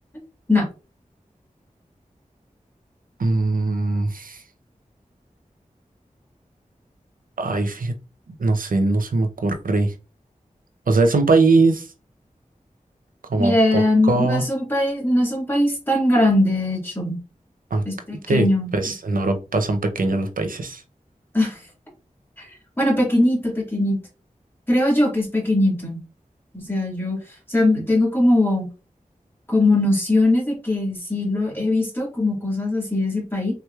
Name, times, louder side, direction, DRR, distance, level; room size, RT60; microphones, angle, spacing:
voice 1, 3.2-4.4 7.4-8.0 8.4-9.9 10.9-11.9 13.3-14.5 17.7-17.8 18.3-18.5 18.7-20.8, right 3 dB, 90° right, 6 dB, 0.6 m, -21 dB
voice 2, 13.4-17.2 17.9-18.7 21.3-21.6 22.4-22.5 22.8-24.0 24.7-26.0 26.5-27.2 27.5-28.7 29.5-33.5, left 1 dB, 15° left, -2 dB, 1.8 m, -20 dB
3.5 x 3.1 x 2.3 m, 0.31 s
wide cardioid pair, 55°, 14 cm